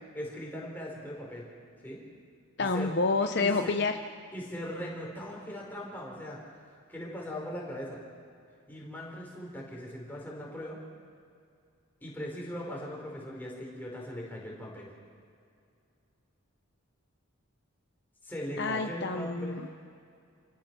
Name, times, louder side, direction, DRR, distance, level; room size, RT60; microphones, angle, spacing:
voice 1, 0.1-1.5 1.8-2.0 2.6-2.9 3.4-3.7 4.3-6.4 6.9-8.0 8.7-10.8 12.0-14.9 18.2-19.7, equal, 10° left, -3 dB, 4.6 m, -39 dB
voice 2, 2.6-3.9 18.6-19.7, left 3 dB, 55° left, 6 dB, 0.8 m, -28 dB
29.0 x 16.0 x 6.1 m, 2.4 s
head